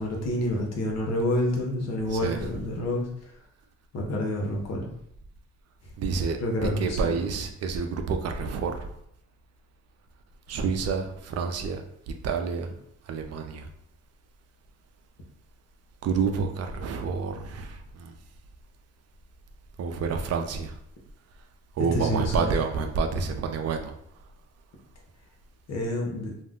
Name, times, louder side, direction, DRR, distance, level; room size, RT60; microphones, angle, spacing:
voice 1, 0.0-3.1 3.9-4.9 6.4-7.1 21.9-22.6 25.7-26.3, left 1 dB, 60° left, 0 dB, 0.8 m, -28 dB
voice 2, 2.1-2.6 6.0-8.9 10.5-12.7 13.1-13.7 16.0-18.1 19.8-20.8 21.8-23.9, right 5 dB, 55° right, 5 dB, 0.5 m, -29 dB
2.4 x 2.1 x 3.5 m, 0.72 s
cardioid pair, 90°, 30 cm